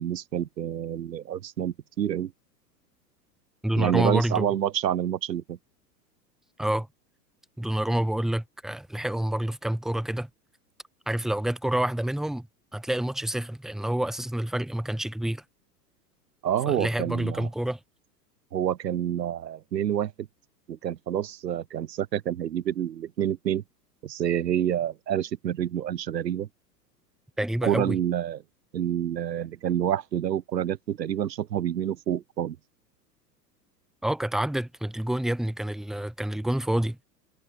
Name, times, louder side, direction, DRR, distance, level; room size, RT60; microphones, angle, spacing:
voice 1, 0.0-2.3 3.8-5.6 16.4-17.5 18.5-20.3 20.7-23.6 24.0-26.5 27.6-28.4 28.7-32.6, right 10 dB, 80° right, 0.6 m, -28 dB
voice 2, 3.6-4.5 6.6-6.9 7.6-10.3 11.1-12.5 12.7-15.4 16.7-17.8 27.4-28.0 34.0-37.0, right 1 dB, ahead, 1.0 m, -28 dB
figure-of-eight pair, 95°, 49 cm